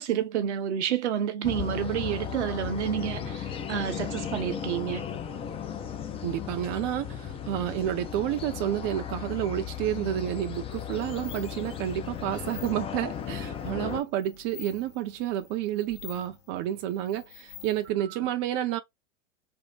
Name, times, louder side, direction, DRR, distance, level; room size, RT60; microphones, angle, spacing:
voice 1, 0.0-5.0 18.2-18.3, right 9 dB, 65° right, 0.9 m, -29 dB
sound 1, 1.4-14.0, left 8 dB, 15° left, 0.5 m, -36 dB
voice 2, 6.2-18.8, right 12 dB, 40° right, 0.6 m, -30 dB
sound 2, 10.5-17.9, left 9 dB, 65° left, 1.8 m, -49 dB
3.6 x 2.0 x 3.7 m
hypercardioid pair, 105°, 37 cm